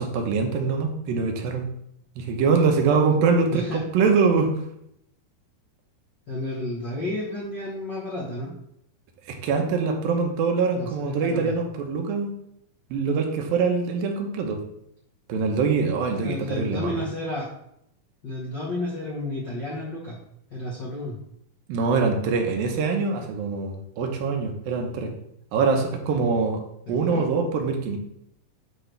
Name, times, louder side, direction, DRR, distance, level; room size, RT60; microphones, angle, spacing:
voice 1, 0.0-1.7 2.2-4.5 9.3-12.3 12.9-14.6 15.3-17.0 21.7-25.1 25.5-26.6 26.9-28.0, right 5 dB, 85° right, 3 dB, 2.8 m, -24 dB
voice 2, 3.5-3.8 6.3-8.5 10.8-11.6 16.2-17.5 18.2-20.2 20.5-21.2 26.9-27.3, left 1 dB, 65° left, -5 dB, 1.1 m, -31 dB
10.5 x 4.9 x 3.4 m, 0.76 s
omnidirectional pair, 4.0 m